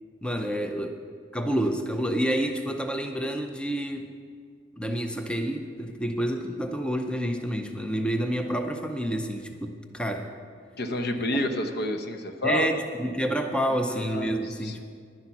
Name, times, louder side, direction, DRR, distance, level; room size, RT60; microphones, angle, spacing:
voice 1, 0.2-1.0 1.3-4.1 4.8-10.3 12.4-14.8, equal, 5° left, 5 dB, 0.5 m, -28 dB
voice 2, 10.8-12.7 13.9-14.8, left 1 dB, 60° left, 6 dB, 0.9 m, -29 dB
10.5 x 10.0 x 5.9 m, 2.1 s
head